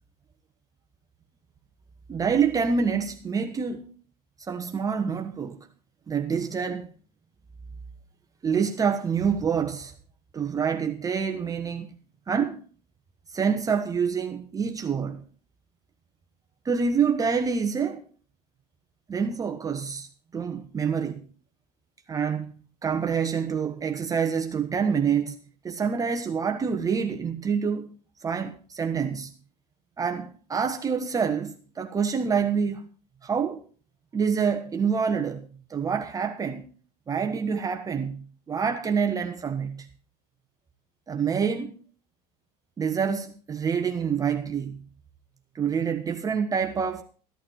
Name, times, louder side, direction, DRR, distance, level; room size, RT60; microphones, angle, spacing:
voice 1, 2.1-3.9 4.4-5.6 6.1-6.9 8.4-9.9 10.3-11.9 12.3-12.6 13.3-15.2 16.6-18.0 19.1-20.1 20.3-21.2 22.1-22.5 22.8-25.4 25.6-27.9 28.2-29.3 30.0-32.9 33.2-33.6 34.1-36.7 37.1-39.9 41.1-41.8 42.8-44.8 45.5-47.0, right 6 dB, 20° right, 1.0 m, -27 dB
15.0 x 11.5 x 4.6 m
supercardioid pair, 135°, 20 cm